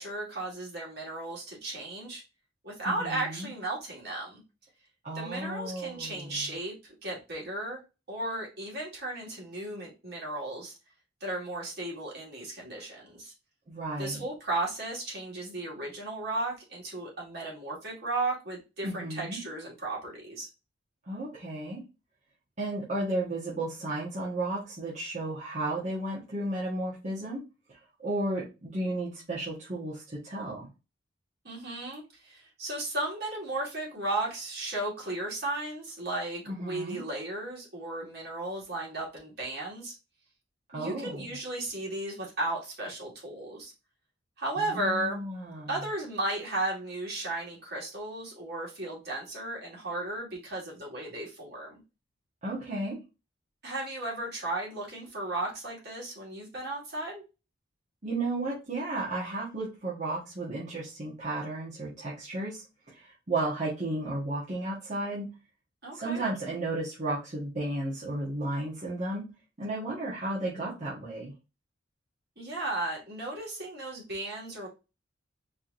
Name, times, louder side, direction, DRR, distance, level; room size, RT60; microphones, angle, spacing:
voice 1, 0.0-2.2 2.6-4.4 5.1-7.8 8.1-10.7 11.2-13.3 14.0-20.5 31.4-39.9 40.7-43.7 44.4-45.2 45.7-51.8 53.6-57.2 65.8-66.2 72.4-74.7, right 2 dB, 60° right, -3 dB, 2.2 m, -35 dB
voice 2, 2.8-3.5 5.0-6.4 13.7-14.2 18.8-19.4 21.1-21.8 22.6-27.4 27.7-30.7 36.5-37.0 40.7-41.2 44.6-45.7 52.4-53.0 58.0-62.6 62.9-65.3 65.9-69.2 69.6-71.3, right 2 dB, 40° right, -7 dB, 1.3 m, -33 dB
4.8 x 3.0 x 2.6 m, 0.28 s
head